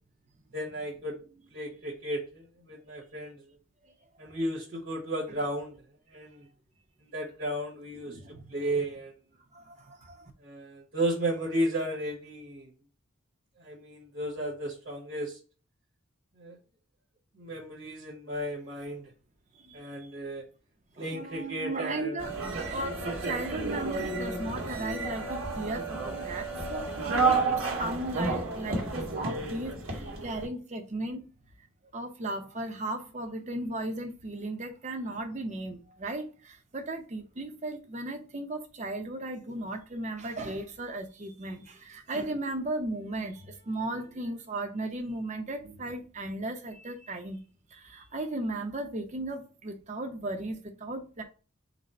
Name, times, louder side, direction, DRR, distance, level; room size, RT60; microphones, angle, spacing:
voice 1, 0.5-1.2 1.5-3.4 4.2-5.7 6.1-6.5 7.1-8.2 8.5-9.1 10.4-12.7 13.6-15.4 16.4-16.6 17.4-19.0 19.7-20.4 21.0-22.3, right 1 dB, 55° right, 1.0 m, -34 dB
voice 2, 8.1-8.4 9.5-10.3 19.6-19.8 21.0-31.2 31.9-47.4 47.7-51.2, right 2 dB, 35° right, 0.6 m, -36 dB
sound 1, 22.2-30.5, right 3 dB, 75° right, 1.2 m, -31 dB
3.9 x 2.1 x 4.1 m
head